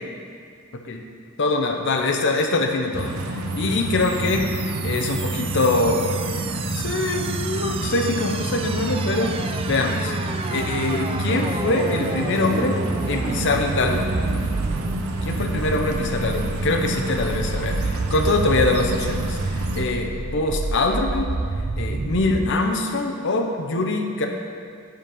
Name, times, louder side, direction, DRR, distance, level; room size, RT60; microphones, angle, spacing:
voice 1, 0.7-1.0 1.4-4.5 4.8-6.1 6.7-9.4 9.7-10.1 10.5-14.2 15.2-21.3 21.8-24.3, left 2 dB, 55° left, 2 dB, 0.7 m, -23 dB
sound 1, 2.9-19.9, right 2 dB, 80° right, 0.7 m, -28 dB
sound 2, 3.5-22.5, right 3 dB, 25° right, 0.3 m, -30 dB
7.5 x 5.2 x 6.1 m, 2.3 s
head